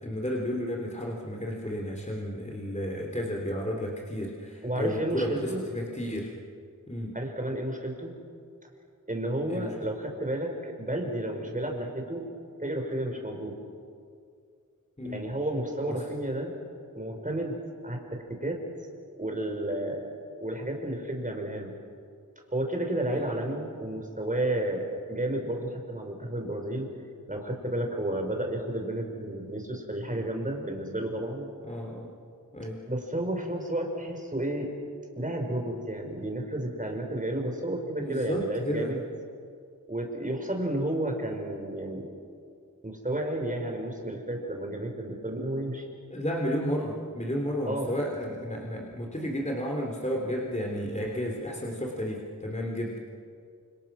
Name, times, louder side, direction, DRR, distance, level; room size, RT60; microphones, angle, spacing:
voice 1, 0.0-6.3 6.9-7.1 9.5-9.7 15.0-15.2 15.9-16.0 23.1-23.2 31.6-32.1 32.5-32.8 38.0-38.9 40.7-40.9 46.1-53.0, equal, 20° left, -1 dB, 3.4 m, -32 dB
voice 2, 4.6-5.6 7.1-8.1 9.1-12.3 12.6-13.5 15.0-16.5 16.9-17.6 17.8-18.6 19.2-20.0 20.4-21.7 22.5-26.9 27.3-31.5 32.9-34.7 35.2-39.0 39.9-42.1 42.8-45.9 47.7-48.0, right 1 dB, 25° right, 2 dB, 4.9 m, -32 dB
29.0 x 27.5 x 6.2 m, 2.3 s
wide cardioid pair, 75°, 33 cm